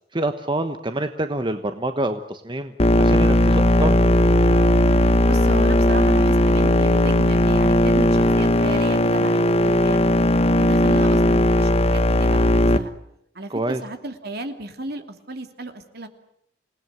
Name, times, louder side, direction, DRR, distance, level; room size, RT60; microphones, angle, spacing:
voice 1, 0.1-2.7 3.0-4.1 13.5-13.8, right 1 dB, 25° right, 8 dB, 1.2 m, -26 dB
sound 1, 2.8-12.8, left 1 dB, 35° left, 1.2 m, -17 dB
voice 2, 5.3-10.2 10.6-12.9 13.3-16.1, right 2 dB, 55° right, 7 dB, 2.8 m, -34 dB
28.5 x 18.5 x 9.5 m, 0.74 s
head